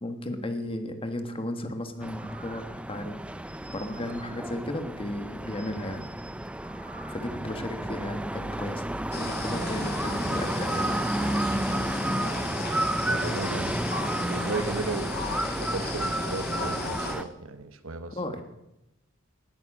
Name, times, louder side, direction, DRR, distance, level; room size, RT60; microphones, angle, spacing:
voice 1, 0.0-3.2 3.7-6.1 7.1-8.9 9.1-10.9 18.1-18.4, left 1 dB, 25° left, 7 dB, 1.4 m, -34 dB
sound 1, 2.0-17.2, right 1 dB, 5° right, 0.4 m, -31 dB
sound 2, 2.2-2.8 3.8-4.5 6.6-7.3 7.7-7.8, right 3 dB, 35° right, 5.1 m, -50 dB
sound 3, 9.1-17.1, left 3 dB, 50° left, 2.6 m, -36 dB
voice 2, 13.1-13.7 14.1-15.3 15.6-18.2, right 3 dB, 75° right, 11 dB, 1.1 m, -35 dB
18.5 x 9.1 x 6.2 m, 0.91 s
head